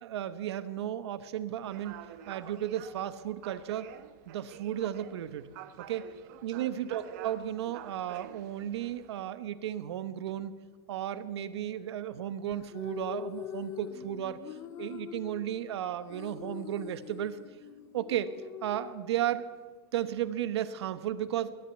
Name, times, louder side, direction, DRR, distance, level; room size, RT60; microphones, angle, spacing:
voice 1, 0.0-2.0 2.3-3.9 4.3-5.5 5.8-6.1 6.4-10.5 10.9-14.4 14.8-17.4 17.9-18.3 18.6-19.5 19.9-21.5, right 11 dB, 85° right, 13 dB, 1.0 m, -34 dB
sound 1, 1.6-9.2, right 11 dB, 45° right, 0.8 m, -49 dB
sound 2, 12.5-19.5, left 10 dB, 20° left, 0.4 m, -44 dB
21.0 x 7.8 x 8.2 m, 1.5 s
supercardioid pair, 170°, 14 cm